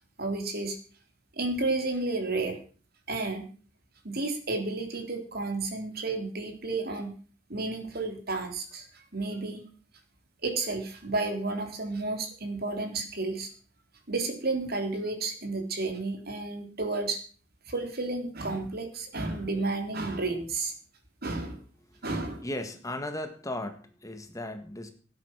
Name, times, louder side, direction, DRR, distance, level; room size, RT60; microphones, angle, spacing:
voice 1, 0.2-0.8 1.4-2.6 3.1-3.5 4.0-7.1 7.5-9.6 10.4-13.5 14.1-17.2 17.7-20.7 21.2-21.6 22.0-22.4, right 3 dB, 50° right, 4 dB, 3.5 m, -32 dB
voice 2, 22.4-24.9, left 1 dB, 15° left, 7 dB, 1.6 m, -36 dB
17.5 x 9.7 x 6.0 m, 0.40 s
head